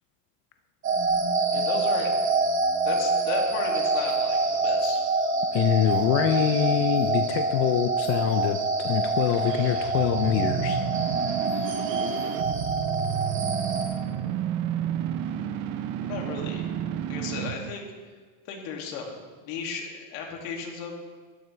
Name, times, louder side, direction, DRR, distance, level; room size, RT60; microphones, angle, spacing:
sound 1, 0.8-13.8, right 3 dB, 30° right, 1.6 m, -26 dB
voice 1, 1.5-2.1 2.8-5.0 16.0-16.7 17.1-17.9 18.5-20.9, left 5 dB, 65° left, 1 dB, 2.3 m, -35 dB
voice 2, 5.5-10.8, left 11 dB, 35° left, 7 dB, 0.5 m, -25 dB
sound 2, 9.1-17.7, right 11 dB, 50° right, 0.7 m, -31 dB
12.0 x 11.5 x 3.3 m, 1.5 s
supercardioid pair, 150°, 40 cm